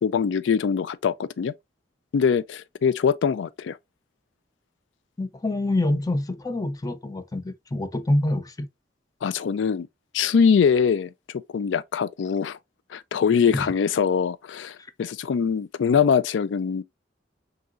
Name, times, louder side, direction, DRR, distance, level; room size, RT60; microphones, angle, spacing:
voice 1, 0.0-1.5 2.1-3.8 9.2-9.9 10.1-11.1 11.5-12.6 12.9-16.8, left 6 dB, 90° left, 0.4 m, -23 dB
voice 2, 5.2-8.7 13.5-13.7, left 1 dB, 20° left, 0.4 m, -26 dB
5.3 x 2.9 x 2.4 m
head